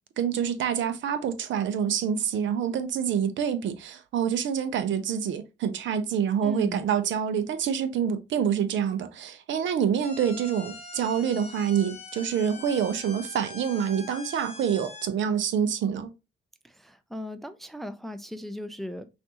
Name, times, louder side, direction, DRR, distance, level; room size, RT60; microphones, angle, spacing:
voice 1, 0.2-16.1, right 8 dB, 70° right, 0.7 m, -27 dB
voice 2, 6.4-6.8 16.6-19.1, left 1 dB, ahead, 0.5 m, -37 dB
sound 1, 10.0-15.1, left 4 dB, 30° left, 1.0 m, -43 dB
5.8 x 2.6 x 2.9 m
cardioid pair, 90°, 20 cm